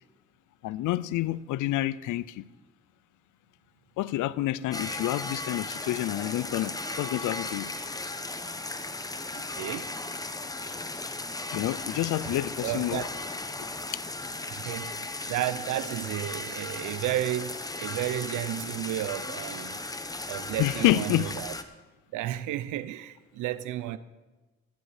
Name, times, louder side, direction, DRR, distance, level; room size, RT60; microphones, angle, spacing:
voice 1, 0.6-2.5 4.0-7.7 11.5-13.1 20.6-21.3, left 15 dB, 80° left, 0.5 m, -28 dB
sound 1, 4.7-21.6, left 2 dB, 10° left, 0.9 m, -36 dB
voice 2, 9.3-9.9 12.2-12.3 12.6-13.1 14.5-19.8 20.3-21.5 22.1-24.0, right 13 dB, 85° right, 0.6 m, -32 dB
15.5 x 10.5 x 5.0 m
cardioid pair, 90°, 30 cm